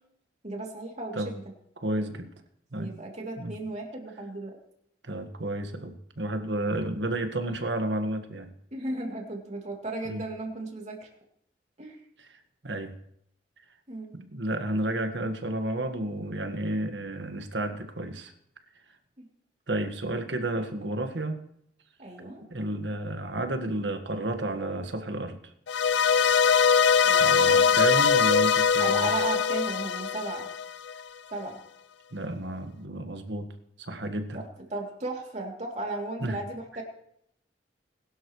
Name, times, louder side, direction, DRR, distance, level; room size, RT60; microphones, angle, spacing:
voice 1, 0.4-1.4 2.8-4.6 8.7-11.1 11.8-12.0 13.9-14.2 19.2-19.3 22.0-22.4 27.0-27.8 28.8-30.5 31.3-31.6 34.3-34.4 34.7-36.8, right 2 dB, 40° right, 0 dB, 3.0 m, -35 dB
voice 2, 1.8-2.3 2.7-2.9 3.4-3.5 5.0-8.5 10.1-10.2 12.2-12.9 14.1-18.3 19.7-21.4 22.5-25.4 27.2-29.1 32.1-33.5 33.8-34.4 36.2-36.4, right 1 dB, 75° right, 6 dB, 1.7 m, -31 dB
sound 1, 25.7-30.9, left 6 dB, 75° left, 0.5 m, -22 dB
21.0 x 12.0 x 3.2 m, 0.73 s
head